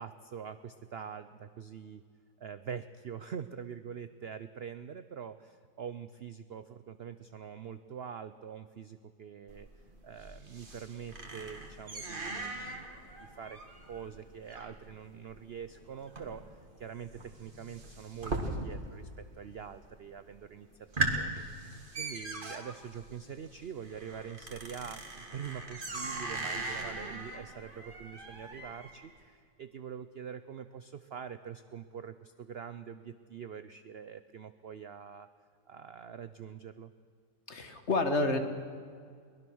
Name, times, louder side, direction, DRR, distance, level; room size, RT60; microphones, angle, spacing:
voice 1, 0.0-2.0 2.4-9.7 10.0-20.7 21.1-35.3 35.7-36.9, right 7 dB, 75° right, 11 dB, 0.5 m, -44 dB
sound 1, 9.5-19.1 19.3-19.9 20.3-20.4 20.7-29.1, right 2 dB, 30° right, 1.9 m, -39 dB
voice 2, 37.5-38.4, left 2 dB, 40° left, 7 dB, 1.6 m, -29 dB
23.0 x 20.0 x 6.3 m, 2.1 s
omnidirectional pair, 1.9 m